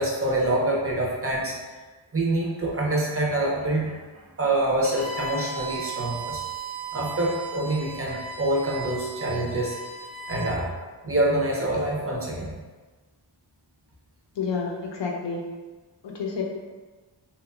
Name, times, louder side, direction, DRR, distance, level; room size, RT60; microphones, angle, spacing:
voice 1, 0.0-1.6 2.1-6.4 6.9-9.8 10.3-10.7 11.0-12.6, right 1 dB, 30° right, -3 dB, 0.5 m, -26 dB
Bowed string instrument, 4.8-10.5, right 4 dB, 15° left, 0.6 m, -36 dB
voice 2, 14.4-15.4 16.0-16.4, left 5 dB, 70° left, 0 dB, 0.6 m, -29 dB
2.9 x 2.2 x 2.4 m, 1.3 s
wide cardioid pair, 110°, 46 cm